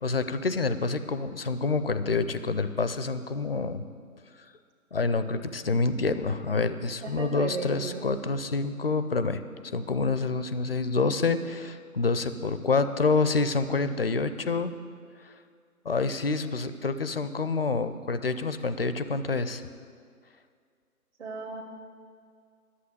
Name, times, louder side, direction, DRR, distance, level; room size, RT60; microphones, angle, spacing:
voice 1, 0.0-3.8 4.9-9.4 9.7-14.7 15.2-15.3 15.8-19.6, left 4 dB, 40° left, 11 dB, 0.5 m, -27 dB
voice 2, 7.0-8.1 21.2-21.6, right 4 dB, 50° right, -1 dB, 1.3 m, -35 dB
11.5 x 7.8 x 8.0 m, 2.1 s
figure-of-eight pair, 140°, 45 cm